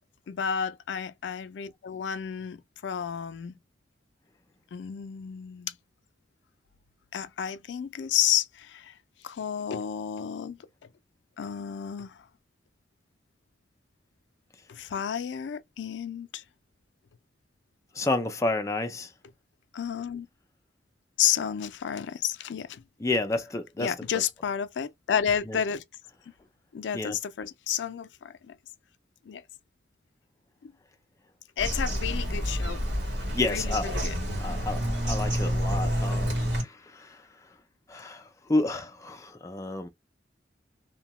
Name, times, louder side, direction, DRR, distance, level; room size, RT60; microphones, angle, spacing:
voice 1, 0.3-3.6 4.7-5.7 7.1-9.0 9.2-10.6 11.4-12.2 14.7-16.4 19.7-20.3 21.2-22.8 23.8-25.8 26.7-28.6 29.3-29.4 30.6-30.7 31.6-32.9 33.5-34.2, left 8 dB, 85° left, 0.4 m, -31 dB
voice 2, 17.9-19.1 23.0-23.9 25.5-25.6 26.9-27.2 33.3-33.9 34.4-37.3 37.9-39.9, left 2 dB, 15° left, 0.4 m, -30 dB
Bird vocalization bird call bird song, 31.6-36.6, equal, 75° right, 1.3 m, -28 dB
2.7 x 2.2 x 2.9 m
head